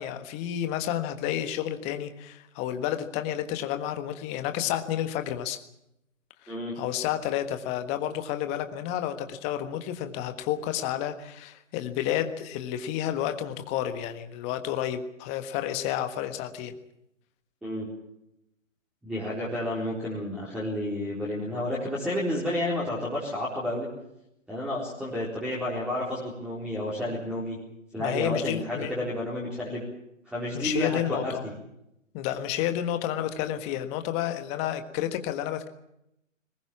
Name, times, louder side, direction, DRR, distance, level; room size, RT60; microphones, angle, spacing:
voice 1, 0.0-5.6 6.4-16.7 28.0-28.9 30.5-31.4 32.1-35.7, left 11 dB, 15° left, 8 dB, 1.5 m, -30 dB
voice 2, 19.0-23.9 24.5-27.6 27.9-29.8 30.3-31.5, left 1 dB, ahead, -6 dB, 4.1 m, -31 dB
22.0 x 20.5 x 7.3 m, 0.82 s
figure-of-eight pair, 140°, 39 cm